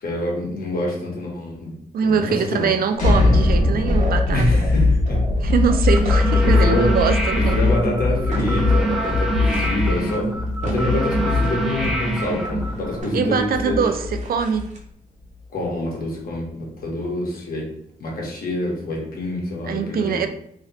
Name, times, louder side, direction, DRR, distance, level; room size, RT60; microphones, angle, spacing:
voice 1, 0.0-1.7 2.0-2.7 4.3-5.2 6.4-6.8 7.5-10.3 10.6-13.8 15.5-17.7 18.0-20.3, left 1 dB, 80° left, -2 dB, 1.3 m, -26 dB
voice 2, 1.9-4.6 5.4-7.6 13.1-14.7 19.7-20.3, right 6 dB, 85° right, 8 dB, 0.4 m, -22 dB
sound 1, 2.9-14.8, left 3 dB, 60° left, 1.3 m, -21 dB
sound 2, 3.8-7.9 8.2-14.8, right 1 dB, 55° right, 1.0 m, -34 dB
sound 3, 5.9-13.0, right 2 dB, ahead, 0.7 m, -26 dB
3.0 x 2.9 x 4.0 m, 0.72 s
wide cardioid pair, 130°, 15 cm